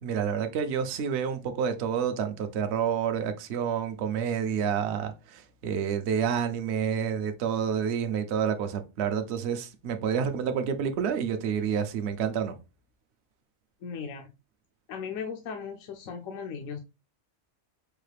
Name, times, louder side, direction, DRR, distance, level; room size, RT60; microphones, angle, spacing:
voice 1, 0.0-12.5, right 7 dB, 65° right, 0.8 m, -29 dB
voice 2, 13.8-14.3 14.9-16.8, left 6 dB, 75° left, 1.0 m, -37 dB
4.6 x 2.4 x 3.2 m
omnidirectional pair, 1.4 m